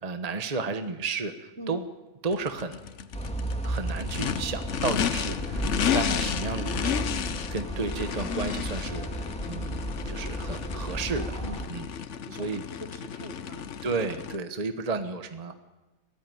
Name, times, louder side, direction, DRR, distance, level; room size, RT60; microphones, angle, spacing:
voice 1, 0.0-1.9 2.2-2.8 3.6-7.0 7.5-9.8 10.1-11.4 11.7-11.9 12.3-12.6 13.8-15.5, right 4 dB, 35° right, 8 dB, 1.1 m, -32 dB
Race car auto racing / Idling / Accelerating revving vroom, 2.3-14.4, left 8 dB, 75° left, 1.2 m, -32 dB
sound 1, 3.1-11.7, right 1 dB, 5° left, 2.4 m, -34 dB
voice 2, 11.4-12.5 12.8-13.7, right 2 dB, 55° right, 8 dB, 1.7 m, -43 dB
21.5 x 15.5 x 9.5 m, 1.2 s
omnidirectional pair, 1.3 m